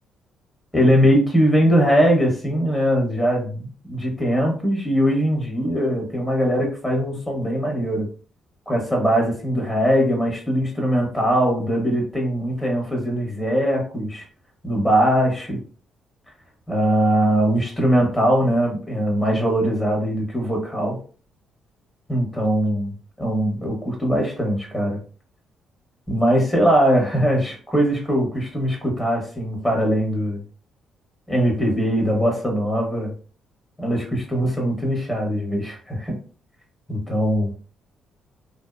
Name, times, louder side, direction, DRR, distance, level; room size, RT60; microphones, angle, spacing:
voice 1, 0.7-8.1 8.7-14.2 14.6-15.6 16.7-21.0 22.1-25.0 26.1-30.4 31.3-33.1 33.8-36.2 36.9-37.5, equal, 5° left, 0 dB, 0.9 m, -21 dB
2.6 x 2.0 x 2.4 m, 0.39 s
cardioid pair, 90°, 0 cm